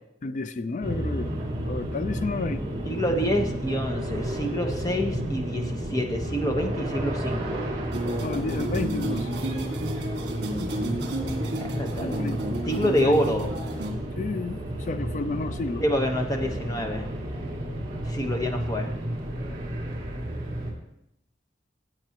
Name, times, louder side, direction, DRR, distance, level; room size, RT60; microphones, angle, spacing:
voice 1, 0.2-1.3 1.6-2.6 8.2-9.3 12.0-12.4 12.8-13.2 14.2-15.8, left 3 dB, 40° left, 12 dB, 0.4 m, -31 dB
sound 1, 0.8-20.7, right 1 dB, 30° right, 2.5 m, -32 dB
voice 2, 2.8-7.6 11.6-12.2 12.7-13.5 15.8-17.1 18.1-18.9, equal, 20° left, 3 dB, 1.1 m, -27 dB
sound 2, 7.9-13.9, right 1 dB, 65° right, 1.8 m, -32 dB
16.5 x 7.7 x 3.0 m, 0.83 s
head